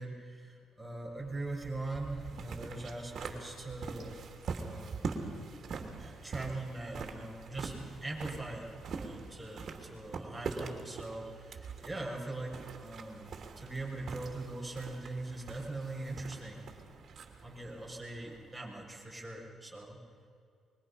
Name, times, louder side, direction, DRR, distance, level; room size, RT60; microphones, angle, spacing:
voice 1, 0.0-4.2 4.5-5.1 6.0-17.1 17.4-20.0, right 2 dB, 10° right, -2 dB, 6.5 m, -41 dB
sound 1, 1.1-18.8, right 5 dB, 55° right, 3.1 m, -44 dB
25.5 x 23.0 x 5.8 m, 2.4 s
cardioid pair, 90°, 0 cm